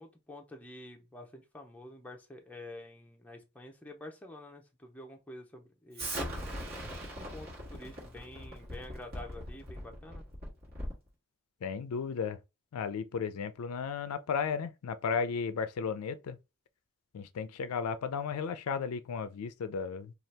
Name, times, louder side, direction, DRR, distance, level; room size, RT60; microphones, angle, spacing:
voice 1, 0.0-6.4 7.1-10.2, left 1 dB, 5° left, 0.5 m, -48 dB
Explosion, 5.9-11.1, equal, 45° right, 1.3 m, -40 dB
voice 2, 11.6-12.4 12.7-16.4 17.1-20.1, left 6 dB, 90° left, 0.4 m, -34 dB
2.7 x 2.4 x 3.2 m
head